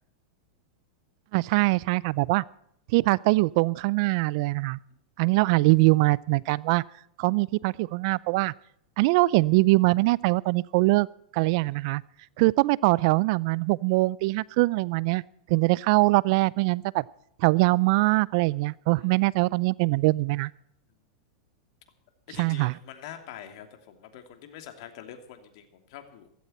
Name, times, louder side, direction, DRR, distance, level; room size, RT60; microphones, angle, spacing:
voice 1, 1.3-2.4 2.9-4.8 5.2-6.8 7.2-8.5 9.0-11.1 11.3-12.0 12.4-15.2 15.5-17.0 17.4-20.5 22.4-22.7, right 23 dB, 55° right, 23 dB, 0.5 m, -22 dB
voice 2, 22.3-26.3, left 10 dB, 60° left, 6 dB, 2.9 m, -45 dB
16.5 x 15.5 x 4.4 m, 0.70 s
hypercardioid pair, 115°, 3 cm